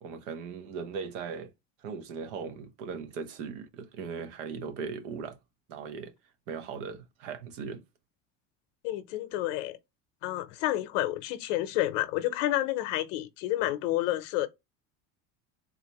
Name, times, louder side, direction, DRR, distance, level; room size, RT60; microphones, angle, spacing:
voice 1, 0.0-1.5 1.8-5.4 5.7-6.1 6.5-7.8, right 5 dB, 90° right, 0.9 m, -38 dB
voice 2, 8.8-9.8 10.2-14.5, left 14 dB, 90° left, 0.6 m, -30 dB
4.0 x 2.4 x 2.9 m
supercardioid pair, 120°, 36 cm